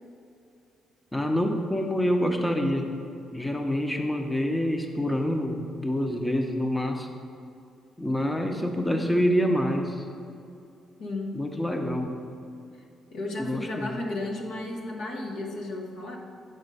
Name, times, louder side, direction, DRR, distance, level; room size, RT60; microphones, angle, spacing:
voice 1, 1.1-2.9 3.3-7.1 8.0-10.1 11.3-12.2 13.4-14.0, equal, 10° left, 4 dB, 0.6 m, -26 dB
voice 2, 8.8-9.2 11.0-11.4 13.1-16.2, left 2 dB, 80° left, 0 dB, 1.0 m, -34 dB
7.8 x 4.3 x 5.4 m, 2.5 s
cardioid pair, 90°, 0 cm